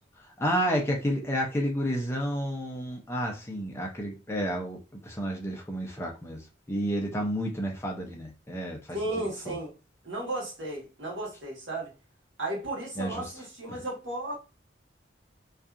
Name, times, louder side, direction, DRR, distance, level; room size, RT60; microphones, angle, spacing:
voice 1, 0.4-9.0 9.5-9.6 13.0-13.2 13.7-13.8, equal, 15° left, 0.5 m, -31 dB
voice 2, 8.9-9.7 10.0-11.9 12.4-14.4, right 1 dB, 70° right, 1.3 m, -34 dB
2.7 x 2.4 x 2.4 m
head